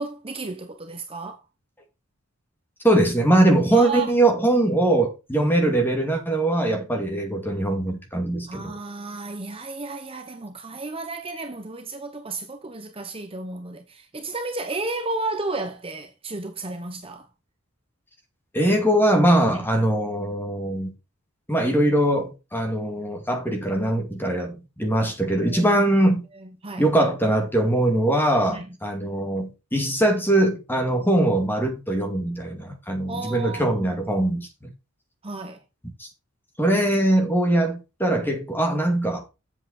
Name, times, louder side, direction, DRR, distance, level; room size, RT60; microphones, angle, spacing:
voice 1, 0.0-1.4 3.7-4.1 8.5-17.3 19.5-19.7 25.4-25.8 26.4-26.9 28.4-28.7 33.1-34.0 35.2-35.6, right 3 dB, 25° right, 1.0 m, -33 dB
voice 2, 2.8-8.7 18.5-20.9 21.5-26.3 26.8-34.7 36.0-36.1 36.6-39.2, right 1 dB, 10° left, 2.4 m, -22 dB
7.9 x 7.8 x 4.3 m
head